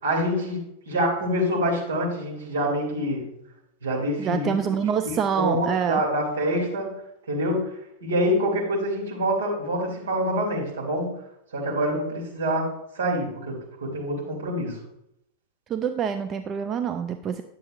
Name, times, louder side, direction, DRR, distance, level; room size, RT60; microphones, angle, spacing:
voice 1, 0.0-3.2 3.8-4.5 5.4-6.9 7.3-7.7 8.0-11.1 11.5-12.7 12.9-14.8, equal, 70° right, -3 dB, 2.7 m, -26 dB
voice 2, 4.2-6.0 15.7-17.4, right 7 dB, 30° right, 8 dB, 0.4 m, -26 dB
9.8 x 7.5 x 2.5 m, 0.79 s
figure-of-eight pair, 90°, 0 cm